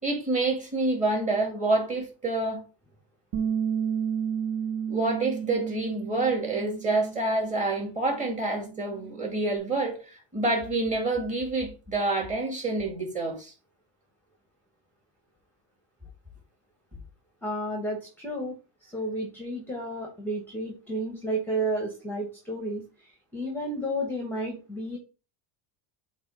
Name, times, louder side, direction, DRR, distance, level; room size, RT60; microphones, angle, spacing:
voice 1, 0.0-2.6 4.9-13.5, right 2 dB, 15° right, 2.1 m, -27 dB
Bass guitar, 3.3-7.7 8.0-9.6, right 7 dB, 65° right, 1.3 m, -33 dB
voice 2, 17.4-18.5 18.8-25.0, right 1 dB, 5° left, 1.1 m, -32 dB
8.0 x 3.1 x 4.8 m
cardioid pair, 160°, 49 cm